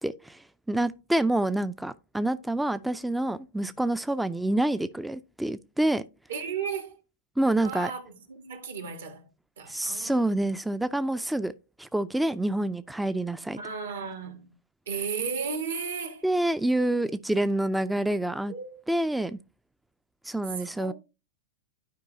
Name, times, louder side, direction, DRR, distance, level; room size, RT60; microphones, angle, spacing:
voice 1, 0.0-6.0 7.4-7.9 9.7-11.5 11.8-13.6 16.2-18.5 18.9-19.4 20.2-20.9, right 1 dB, 5° right, 0.3 m, -27 dB
voice 2, 6.3-7.0 7.6-9.3 9.6-10.2 13.6-14.5 14.9-16.3 17.0-17.1 18.5-18.8 20.6-20.9, right 6 dB, 80° right, 1.7 m, -35 dB
11.5 x 4.6 x 2.7 m
hypercardioid pair, 115°, 0 cm